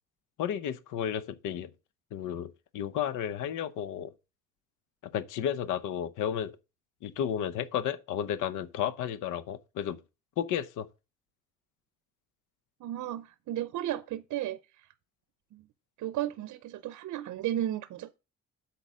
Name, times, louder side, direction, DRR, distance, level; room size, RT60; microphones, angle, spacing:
voice 1, 0.4-1.7 2.1-4.1 5.0-6.6 7.0-10.0 10.4-10.9, left 9 dB, 85° left, 0.8 m, -32 dB
voice 2, 12.8-14.6 15.5-15.6 16.0-18.2, right 12 dB, 70° right, 0.6 m, -34 dB
8.2 x 4.2 x 6.2 m
cardioid pair, 90°, 30 cm